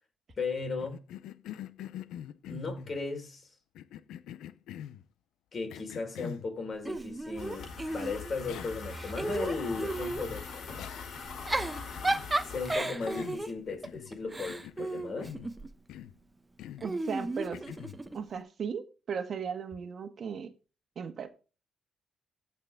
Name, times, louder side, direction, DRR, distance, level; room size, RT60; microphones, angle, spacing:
voice 1, 0.4-1.0 2.4-3.5 5.5-10.9 12.5-15.3, left 4 dB, 45° left, 4.7 m, -36 dB
Cough, 0.8-3.0 3.7-5.0 5.7-6.5 7.9-8.0 8.5-8.9 9.2-9.3 10.8-11.3 11.9-12.3 12.7-14.2 14.5-15.5 15.9-16.2 16.6-16.9 17.5-18.0, left 11 dB, 90° left, 0.6 m, -44 dB
Giggle / Chuckle chortle, 6.8-8.5 8.9-10.3 11.2-15.7 16.8-18.2, right 2 dB, 20° right, 0.9 m, -34 dB
sound 1, 7.4-12.8, left 4 dB, 65° left, 3.9 m, -42 dB
voice 2, 16.8-17.6 18.1-20.5 20.9-21.3, right 6 dB, 55° right, 1.4 m, -36 dB
16.0 x 5.9 x 3.6 m
cardioid pair, 85°, 0 cm